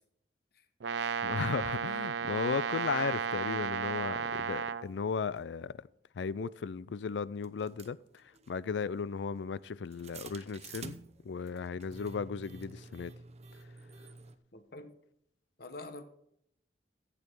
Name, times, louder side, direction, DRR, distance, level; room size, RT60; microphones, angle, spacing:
Brass instrument, 0.8-4.9, right 6 dB, 85° right, 0.5 m, -34 dB
voice 1, 1.2-5.8 6.1-11.0 11.2-13.1, left 5 dB, 85° left, 0.4 m, -36 dB
sound 1, 5.4-5.5 6.4-6.5 7.4-14.4, right 3 dB, 40° right, 0.8 m, -50 dB
voice 2, 14.5-14.9 15.6-16.0, left 2 dB, 60° left, 1.2 m, -46 dB
14.5 x 8.5 x 4.5 m
head